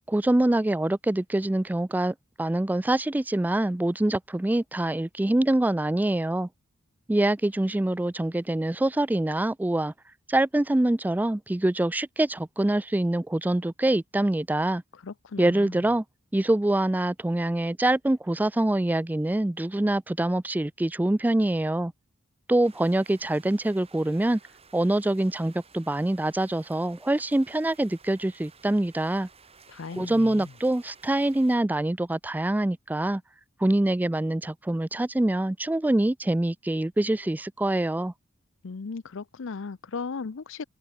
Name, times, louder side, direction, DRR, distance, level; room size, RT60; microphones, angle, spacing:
voice 1, 0.1-6.5 7.1-9.9 10.3-14.8 15.4-16.0 16.3-21.9 22.5-24.4 24.7-29.3 30.0-33.2 33.6-38.1, right 1 dB, 10° right, 0.3 m, -25 dB
voice 2, 14.9-15.8 29.7-30.5 38.6-40.6, left 4 dB, 70° left, 0.6 m, -37 dB
sound 1, 22.6-31.6, right 5 dB, 30° right, 4.5 m, -55 dB
open air
head